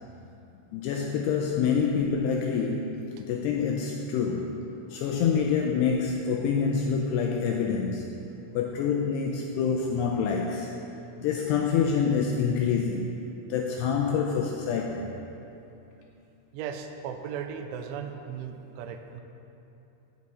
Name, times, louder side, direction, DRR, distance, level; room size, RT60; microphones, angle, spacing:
voice 1, 0.7-8.1 8.6-10.7 11.2-13.2 13.5-15.1, left 6 dB, 90° left, 1 dB, 2.4 m, -27 dB
voice 2, 16.5-19.2, right 7 dB, 85° right, 6 dB, 3.1 m, -37 dB
15.5 x 7.5 x 4.1 m, 2.9 s
omnidirectional pair, 5.3 m